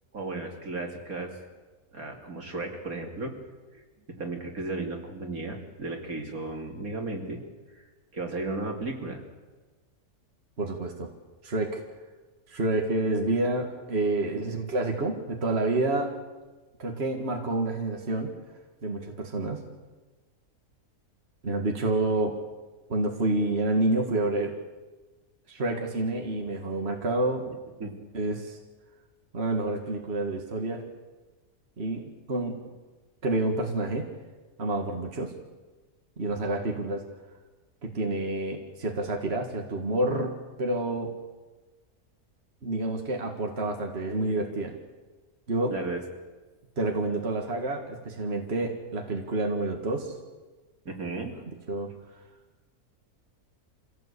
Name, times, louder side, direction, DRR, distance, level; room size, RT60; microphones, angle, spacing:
voice 1, 0.1-1.4 1.9-3.3 3.7-3.8 4.1-7.4 8.1-9.2 27.8-28.0 45.7-46.0 50.9-51.4, right 3 dB, 70° right, 2 dB, 3.4 m, -34 dB
voice 2, 10.6-11.1 11.4-11.8 12.5-16.1 16.8-18.4 18.8-19.6 21.4-22.4 22.9-24.5 25.5-27.6 28.1-28.6 29.3-30.8 31.8-32.6 33.2-34.1 34.6-35.3 36.2-37.1 37.8-40.3 40.6-41.1 42.6-44.7 45.5-45.7 46.8-50.1 51.7-51.9, right 2 dB, 45° right, 2 dB, 2.2 m, -28 dB
26.0 x 17.0 x 8.4 m, 1.3 s
omnidirectional pair, 1.6 m